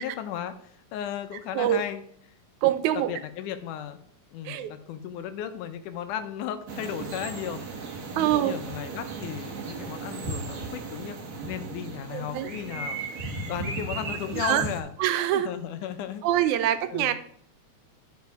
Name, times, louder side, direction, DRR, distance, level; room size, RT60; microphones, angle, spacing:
voice 1, 0.0-2.0 3.1-4.0 4.3-11.2 11.5-14.9 15.3-16.2 16.5-17.1, left 10 dB, 90° left, 8 dB, 2.3 m, -35 dB
voice 2, 2.6-3.1 4.5-4.7 8.2-8.5 12.1-12.5 14.3-14.6 15.0-15.5 16.2-17.1, right 12 dB, 80° right, 11 dB, 2.0 m, -24 dB
sound 1, 6.7-14.8, right 3 dB, 60° right, 1.0 m, -36 dB
10.5 x 5.3 x 4.7 m, 0.62 s
omnidirectional pair, 3.5 m